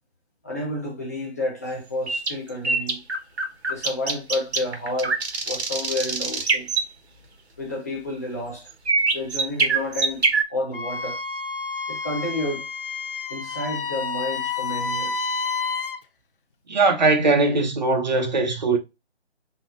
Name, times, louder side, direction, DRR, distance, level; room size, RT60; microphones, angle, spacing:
voice 1, 0.4-3.0 3.7-6.7 7.6-8.7 9.1-10.2 10.5-11.2 11.9-12.7 13.3-15.2, left 1 dB, 15° left, 0.8 m, -30 dB
sound 1, 2.1-6.9 8.9-10.4, right 4 dB, 70° right, 1.3 m, -24 dB
Wind instrument woodwind instrument, 10.7-16.0, left 4 dB, 50° left, 0.5 m, -29 dB
voice 2, 16.7-18.8, right 3 dB, 40° right, 1.0 m, -20 dB
4.1 x 3.4 x 2.5 m
hypercardioid pair, 170°, 34 cm